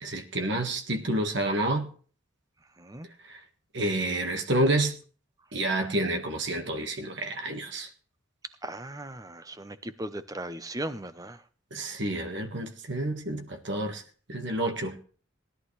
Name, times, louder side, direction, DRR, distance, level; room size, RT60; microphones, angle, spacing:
voice 1, 0.0-1.9 3.7-4.9 5.5-7.9 11.7-14.0 14.3-15.0, right 1 dB, 55° right, 1.7 m, -29 dB
voice 2, 2.8-3.1 8.6-11.4, right 1 dB, 15° right, 0.8 m, -37 dB
19.0 x 11.5 x 3.3 m
head